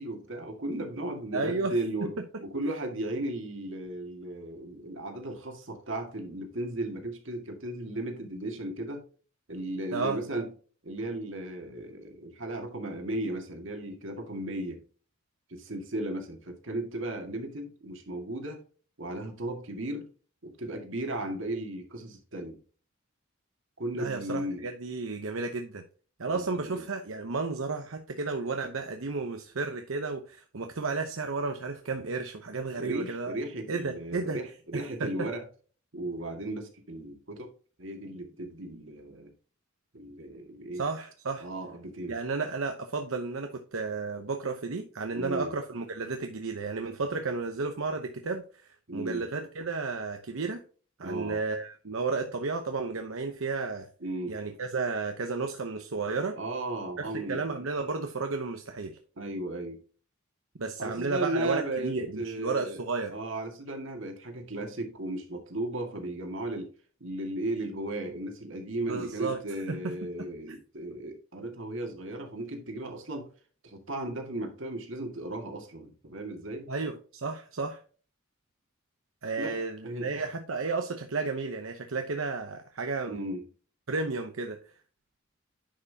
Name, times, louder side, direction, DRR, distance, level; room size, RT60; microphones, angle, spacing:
voice 1, 0.0-2.1 2.4-9.0 9.5-10.5 10.8-14.8 15.5-18.6 19.0-20.1 20.4-22.6 23.8-24.7 26.3-26.8 32.8-35.5 35.9-37.5 37.8-39.3 39.9-40.8 41.4-42.1 45.1-45.5 48.9-49.3 51.0-51.4 54.0-54.4 56.4-57.4 59.2-59.8 60.8-62.8 63.1-66.7 67.0-73.3 73.6-76.7 79.4-80.2 83.1-83.5, right 1 dB, 65° right, 2.1 m, -35 dB
voice 2, 1.3-1.7 9.9-10.2 23.9-25.8 26.2-33.4 33.7-34.4 34.7-35.1 40.7-41.5 42.1-50.6 51.0-53.9 54.3-56.4 57.0-59.0 60.6-63.2 68.8-69.4 69.7-69.9 76.7-77.8 79.2-83.2 83.9-84.6, right 4 dB, 85° right, 0.8 m, -33 dB
10.0 x 5.7 x 2.8 m
head